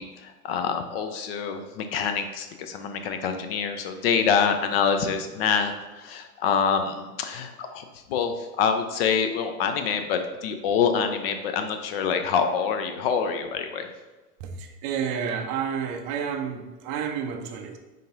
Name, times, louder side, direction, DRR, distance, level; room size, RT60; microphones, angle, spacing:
voice 1, 0.0-13.9, left 6 dB, 40° left, 7 dB, 0.4 m, -26 dB
voice 2, 14.4-17.8, right 7 dB, 30° right, 4 dB, 0.4 m, -30 dB
5.2 x 3.8 x 2.7 m, 1.2 s
hypercardioid pair, 95°, 47 cm